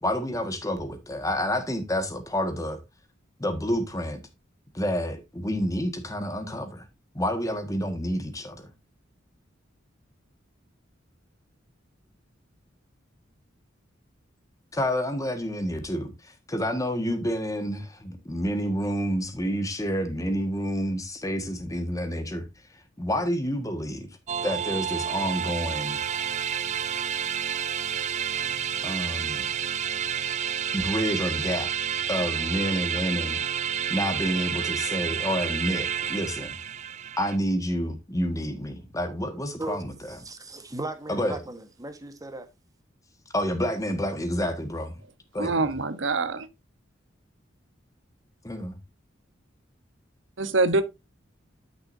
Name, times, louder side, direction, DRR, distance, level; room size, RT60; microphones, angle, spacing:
voice 1, 0.0-2.8 3.4-4.2 4.7-6.8 7.1-8.7 14.7-22.5 23.0-24.1 24.4-26.0 28.8-29.5 30.7-31.7 32.1-33.4 33.9-36.6 37.2-40.2 41.1-41.4 43.3-44.9 45.3-45.7 48.4-48.8, equal, 15° left, 1.6 m, -29 dB
sound 1, 24.3-37.4, right 8 dB, 40° right, 0.5 m, -30 dB
voice 2, 39.6-42.5, right 2 dB, 20° right, 1.3 m, -37 dB
voice 3, 45.4-46.5 50.4-50.8, right 3 dB, 70° right, 1.0 m, -24 dB
12.0 x 6.6 x 2.7 m
head